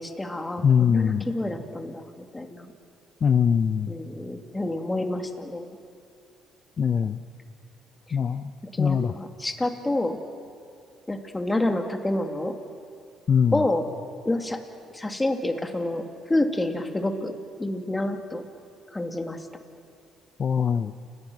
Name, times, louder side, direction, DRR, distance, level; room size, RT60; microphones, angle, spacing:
voice 1, 0.0-2.7 3.9-5.7 8.7-10.2 11.1-12.5 13.5-13.8 14.2-14.6 14.9-17.3 17.6-18.4 18.9-19.5, left 1 dB, 15° left, 6 dB, 2.5 m, -28 dB
voice 2, 0.6-1.3 3.2-3.9 6.8-7.2 8.1-8.5 8.8-9.1 13.3-13.6 20.4-20.9, left 7 dB, 50° left, 11 dB, 0.7 m, -22 dB
30.0 x 18.0 x 6.2 m, 2.6 s
supercardioid pair, 65°, 0 cm